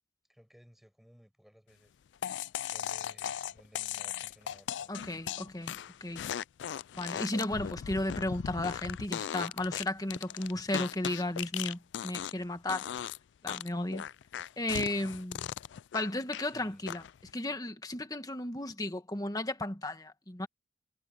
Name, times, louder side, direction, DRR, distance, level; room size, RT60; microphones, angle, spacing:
voice 1, 0.3-1.9 2.7-5.2 16.5-16.9, equal, ahead, 7.6 m, -59 dB
sound 1, 2.2-12.4 12.7-13.2 13.5-16.5 16.9-17.3, left 9 dB, 85° left, 0.3 m, -38 dB
voice 2, 4.9-6.2 7.0-12.9 13.4-14.1 14.6-15.5 15.9-17.0 17.3-20.5, left 1 dB, 20° left, 1.6 m, -34 dB
head